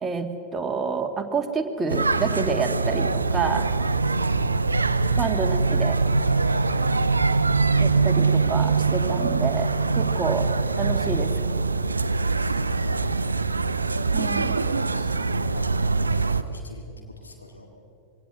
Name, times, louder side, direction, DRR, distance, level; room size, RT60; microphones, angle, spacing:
voice 1, 0.0-3.7 5.1-6.0 7.8-10.5 10.8-11.3 14.1-14.5, right 5 dB, 20° right, 5 dB, 1.8 m, -28 dB
sound 1, 1.9-16.4, right 4 dB, 80° right, 0.7 m, -23 dB
voice 2, 4.1-5.1 6.2-7.1 12.4-13.6 14.9-17.7, left 3 dB, 80° left, 3 dB, 2.1 m, -40 dB
23.0 x 17.0 x 7.9 m, 2.8 s
figure-of-eight pair, 90°, 0 cm